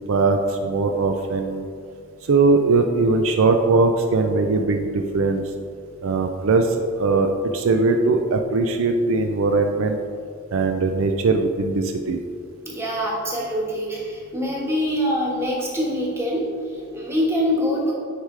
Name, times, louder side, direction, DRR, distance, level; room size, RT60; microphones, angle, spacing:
voice 1, 0.1-1.7 2.2-5.5 6.0-10.0 10.5-12.2, right 3 dB, 65° right, 5 dB, 0.4 m, -20 dB
voice 2, 12.6-17.9, equal, 10° right, -4 dB, 1.4 m, -24 dB
9.9 x 4.8 x 3.3 m, 2.3 s
head